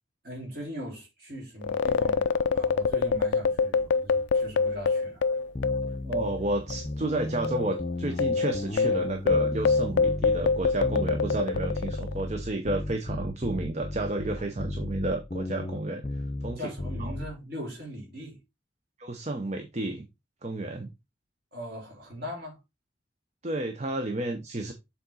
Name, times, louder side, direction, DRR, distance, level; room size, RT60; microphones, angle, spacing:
voice 1, 0.2-5.3 16.6-18.4 21.5-22.6, equal, 55° right, 3.6 m, -40 dB
sound 1, 1.6-6.4 6.7-6.8 7.4-12.2, left 4 dB, 75° left, 0.4 m, -25 dB
sound 2, 5.5-17.3, left 1 dB, 30° left, 0.6 m, -34 dB
voice 2, 6.0-16.7 17.0-17.1 19.0-20.1 20.4-20.9 23.4-24.7, right 2 dB, 35° right, 0.7 m, -31 dB
7.1 x 4.0 x 3.9 m
head